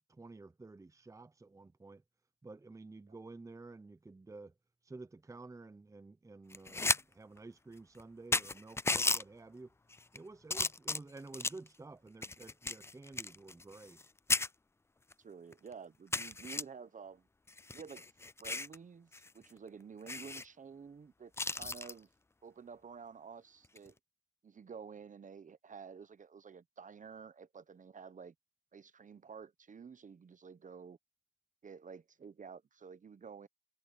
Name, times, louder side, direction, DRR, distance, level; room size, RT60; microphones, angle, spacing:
voice 1, 0.1-2.0 2.4-4.5 4.8-9.7 10.1-14.0, right 3 dB, 15° right, 0.7 m, -51 dB
sound 1, 6.5-7.0 7.4-7.5 8.0-8.1 8.3-9.2 9.9-10.2 10.5-11.7 12.2-14.0 14.3-14.5 15.1-15.2 15.5-15.6 16.1-16.6 17.5-18.8 19.1-19.3 19.6-19.7 20.1-20.4 21.4-21.9 23.6-23.9, left 3 dB, 15° left, 0.4 m, -34 dB
voice 2, 15.2-17.3 17.7-18.1 18.4-22.1 22.4-23.9 24.4-28.3 28.7-31.0 31.6-33.5, right 6 dB, 45° right, 0.9 m, -51 dB
cardioid pair, 95°, 19 cm